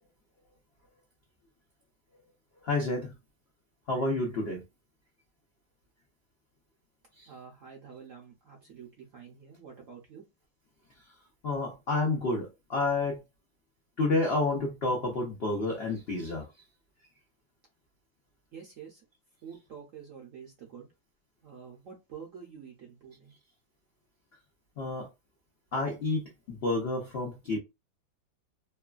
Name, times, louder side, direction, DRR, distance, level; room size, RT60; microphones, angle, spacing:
voice 1, 2.6-3.1 3.9-4.6 7.1-7.3 11.0-11.1 11.4-13.2 14.0-16.5 24.8-25.1 25.7-27.6, left 2 dB, 80° left, 0.5 m, -30 dB
voice 2, 7.3-10.2 18.5-19.1 19.4-20.9 21.4-23.3, right 7 dB, 65° right, 0.8 m, -48 dB
3.1 x 2.2 x 2.4 m
omnidirectional pair, 2.0 m